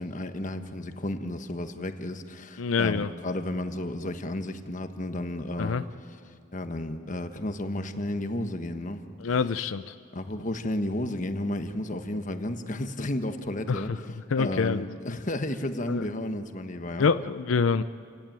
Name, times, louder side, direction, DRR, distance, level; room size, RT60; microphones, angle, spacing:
voice 1, 0.0-5.8 6.5-9.0 10.1-17.1, left 1 dB, 40° left, 8 dB, 1.2 m, -32 dB
voice 2, 2.6-3.1 5.6-5.8 9.2-9.9 13.7-14.0 14.3-15.2 15.9-16.0 17.0-17.8, left 5 dB, 85° left, 12 dB, 0.5 m, -26 dB
29.0 x 16.5 x 9.0 m, 2.3 s
head